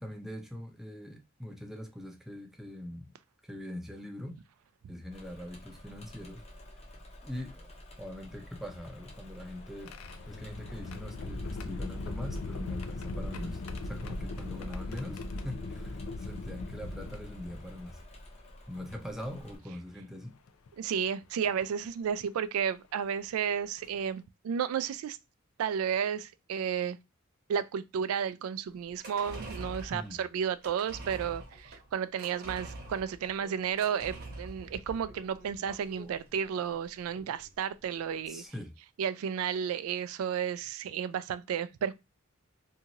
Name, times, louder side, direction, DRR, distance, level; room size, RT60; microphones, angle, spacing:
voice 1, 0.0-3.1 3.4-4.4 4.9-6.4 7.2-7.7 8.0-10.0 10.3-18.0 18.7-20.4 29.9-30.2 38.3-38.7, left 1 dB, ahead, 0.5 m, -42 dB
Engine / Mechanisms, 5.1-19.6, equal, 30° left, 0.8 m, -50 dB
sound 1, 8.7-18.0 18.9-19.0 20.5-20.7 21.4-21.6 23.2-23.3 23.8-24.0, left 2 dB, 85° left, 0.4 m, -39 dB
voice 2, 20.8-25.2 25.6-27.0 27.5-38.4 39.0-41.9, right 8 dB, 85° right, 0.3 m, -32 dB
sound 2, 28.8-37.5 37.8-37.9, right 2 dB, 50° right, 0.9 m, -45 dB
2.7 x 2.4 x 2.8 m
head